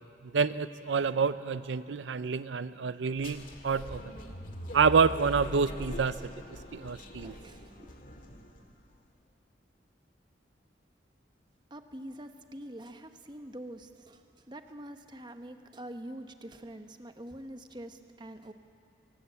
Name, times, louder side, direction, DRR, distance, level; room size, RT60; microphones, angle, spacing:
voice 1, 0.3-4.1 4.7-6.2 6.7-7.4, right 5 dB, 85° right, 14 dB, 0.5 m, -28 dB
sound 1, 3.2-8.7, left 1 dB, 50° left, 2.0 m, -43 dB
voice 2, 7.0-7.9 11.7-14.2 14.5-18.5, right 1 dB, 25° right, 7 dB, 1.0 m, -45 dB
23.5 x 18.0 x 8.2 m, 2.5 s
head